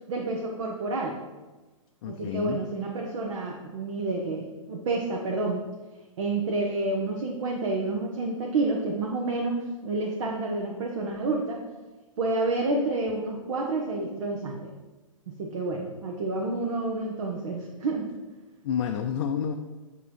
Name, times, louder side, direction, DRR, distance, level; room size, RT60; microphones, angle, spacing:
voice 1, 0.1-1.2 2.0-5.6 6.2-11.6 12.2-14.7 15.3-18.1, right 2 dB, 60° right, 0 dB, 0.9 m, -29 dB
voice 2, 2.0-2.6 18.6-19.5, left 8 dB, 50° left, 4 dB, 0.5 m, -29 dB
9.0 x 3.0 x 4.4 m, 1.2 s
hypercardioid pair, 130°, 17 cm